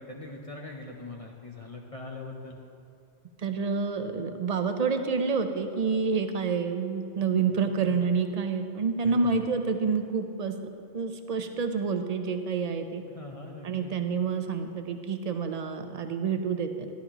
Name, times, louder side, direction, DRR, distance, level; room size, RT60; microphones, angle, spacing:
voice 1, 0.0-2.6 7.4-8.0 9.0-9.5 13.1-13.9, left 2 dB, 35° left, 0 dB, 0.7 m, -42 dB
voice 2, 3.4-10.5 10.9-13.0 13.6-16.9, right 5 dB, 45° right, 7 dB, 0.6 m, -28 dB
13.0 x 11.0 x 3.0 m, 2.5 s
omnidirectional pair, 1.1 m